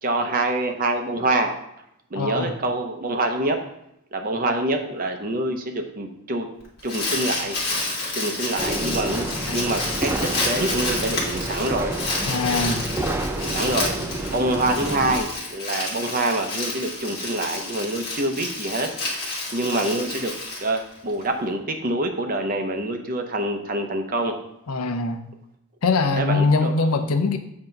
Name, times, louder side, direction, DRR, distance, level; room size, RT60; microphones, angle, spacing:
voice 1, 0.0-1.5 2.1-3.6 4.1-6.5 6.8-7.6 8.1-11.9 13.4-13.9 14.3-20.3 20.6-24.3 26.2-26.7, right 2 dB, 40° right, 4 dB, 0.7 m, -26 dB
voice 2, 2.1-2.6 9.5-9.6 12.3-12.9 24.7-25.2 25.8-27.4, left 3 dB, 85° left, 8 dB, 0.6 m, -22 dB
Crumpling crinkling, 6.6-21.2, left 2 dB, 50° left, 1.6 m, -30 dB
sound 1, 8.6-15.2, right 2 dB, 10° right, 0.4 m, -29 dB
7.7 x 2.9 x 5.2 m, 0.80 s
head